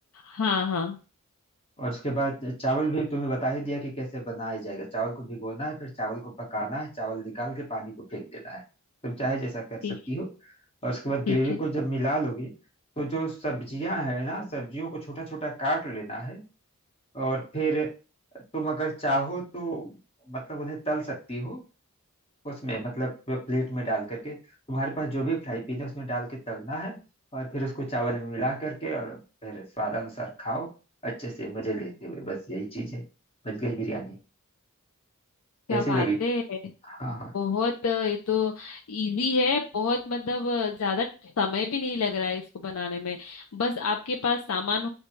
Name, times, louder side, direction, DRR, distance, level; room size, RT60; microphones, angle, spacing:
voice 1, 0.2-1.0 9.8-10.0 11.3-11.7 35.7-36.6 37.1-41.1 41.4-44.9, left 4 dB, 70° left, 3 dB, 0.5 m, -28 dB
voice 2, 1.8-8.6 9.0-9.8 10.1-10.5 10.8-12.5 13.0-16.4 17.1-17.9 18.5-20.0 20.3-21.6 22.4-24.4 24.7-27.0 27.3-30.7 31.0-33.0 33.4-34.2 35.7-36.2 36.8-37.3, right 2 dB, 25° left, -1 dB, 1.5 m, -31 dB
6.7 x 2.3 x 3.1 m, 0.33 s
head